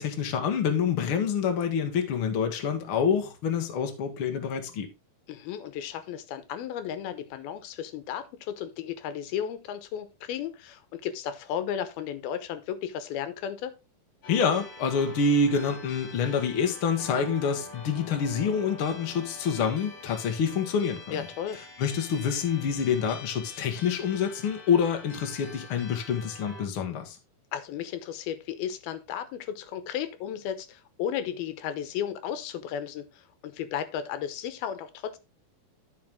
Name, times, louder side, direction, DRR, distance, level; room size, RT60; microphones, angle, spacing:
voice 1, 0.0-4.9 14.3-21.3 21.8-27.2, left 6 dB, 50° left, 1.9 m, -27 dB
voice 2, 5.3-13.7 21.1-21.6 27.5-35.2, left 9 dB, 85° left, 2.9 m, -34 dB
sound 1, 14.2-26.6, left 3 dB, 65° left, 5.0 m, -45 dB
14.0 x 4.7 x 3.6 m
omnidirectional pair, 4.2 m